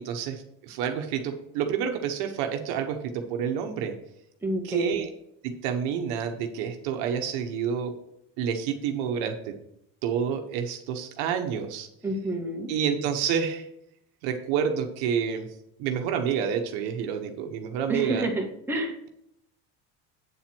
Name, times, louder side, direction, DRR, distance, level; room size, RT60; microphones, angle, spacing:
voice 1, 0.0-3.9 4.6-5.1 5.4-7.9 8.4-9.5 10.0-11.9 12.7-13.7 14.2-15.5 15.8-18.3, right 7 dB, 80° right, 5 dB, 1.2 m, -29 dB
voice 2, 4.4-5.0 12.0-12.7 17.9-19.0, right 1 dB, 5° right, -1 dB, 1.8 m, -29 dB
8.8 x 4.4 x 6.1 m, 0.78 s
supercardioid pair, 105°, 37 cm